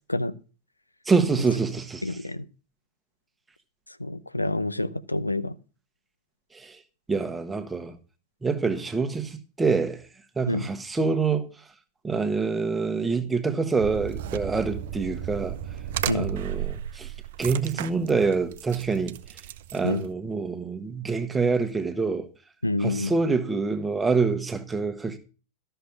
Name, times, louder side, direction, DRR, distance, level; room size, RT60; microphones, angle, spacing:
voice 1, 1.0-2.2 6.5-6.8 7.1-8.0 8.4-10.1 10.4-11.5 12.0-15.6 16.1-17.1 17.4-19.2 19.7-22.3 22.8-25.2, right 4 dB, 10° right, 1.3 m, -26 dB
voice 2, 2.0-2.4 4.0-5.5 10.5-10.7 16.1-16.3 19.8-20.0 22.6-23.1, left 2 dB, 85° left, 0.6 m, -27 dB
sound 1, 13.8-20.1, right 11 dB, 55° right, 0.7 m, -34 dB
13.0 x 6.8 x 5.9 m
figure-of-eight pair, 90°, 0 cm